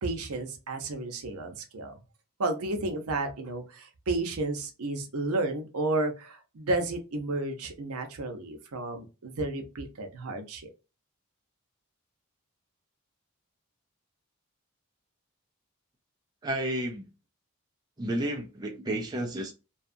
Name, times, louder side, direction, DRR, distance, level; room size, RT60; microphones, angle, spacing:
voice 1, 0.0-2.0 2.4-10.7, right 2 dB, 85° right, 0.7 m, -32 dB
voice 2, 16.4-17.1 18.0-19.5, right 1 dB, 20° right, 0.4 m, -31 dB
2.7 x 2.3 x 2.5 m
head